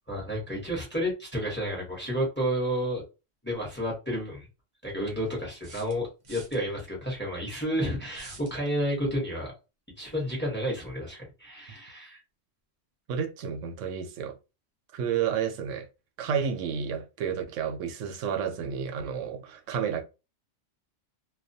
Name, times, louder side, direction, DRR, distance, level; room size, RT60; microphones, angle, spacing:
voice 1, 0.1-3.0 3.4-4.5 4.8-9.5 10.0-12.2, equal, 10° left, 0.9 m, -31 dB
sound 1, 3.5-3.6 5.6-6.6 8.1-8.6, right 3 dB, 45° right, 0.6 m, -47 dB
voice 2, 13.1-14.4 14.9-15.9 16.2-20.0, right 7 dB, 80° right, 0.9 m, -31 dB
2.3 x 2.2 x 2.6 m
omnidirectional pair, 1.3 m